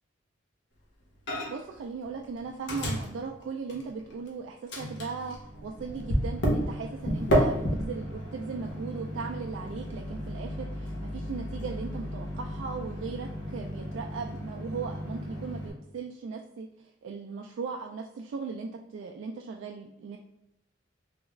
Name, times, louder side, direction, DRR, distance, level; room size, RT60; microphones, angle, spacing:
Microwave oven, 1.3-1.8 2.0-4.3 4.7-15.7, equal, 65° left, 0.8 m, -32 dB
voice 1, 1.5-16.7 17.0-20.2, right 5 dB, 75° right, 1 dB, 0.3 m, -38 dB
3.4 x 2.3 x 3.1 m, 0.85 s
head